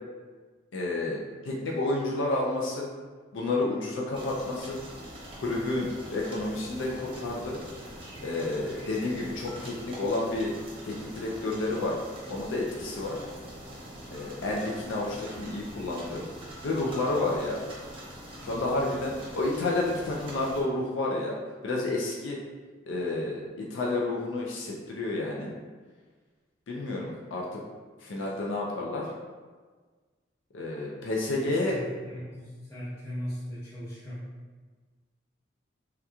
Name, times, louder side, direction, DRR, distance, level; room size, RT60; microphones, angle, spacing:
voice 1, 0.7-1.2 1.4-2.9 3.3-4.8 5.4-7.6 8.2-10.5 10.8-12.0 12.3-13.2 14.1-16.2 16.6-17.6 18.4-21.4 21.6-22.4 22.9-25.5 26.7-27.6 28.0-29.1 30.5-31.8, left 2 dB, 75° left, -3 dB, 0.4 m, -30 dB
sound 1, 4.1-20.6, right 1 dB, 25° right, 0.7 m, -44 dB
voice 2, 31.2-34.3, equal, 15° left, -14 dB, 0.7 m, -39 dB
3.5 x 2.9 x 2.3 m, 1.4 s
head